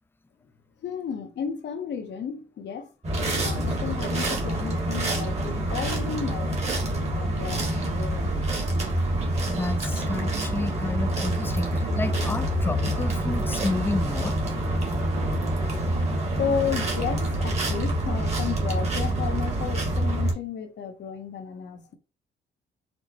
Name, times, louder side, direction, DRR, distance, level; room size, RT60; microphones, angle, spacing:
voice 1, 0.8-2.9 3.4-8.4 16.2-21.9, left 7 dB, 65° left, 0.8 m, -33 dB
sound 1, 3.0-20.3, right 1 dB, 35° right, 1.3 m, -26 dB
voice 2, 9.5-14.7, left 2 dB, 10° left, 0.4 m, -31 dB
4.4 x 2.1 x 2.9 m
cardioid pair, 90°, 20 cm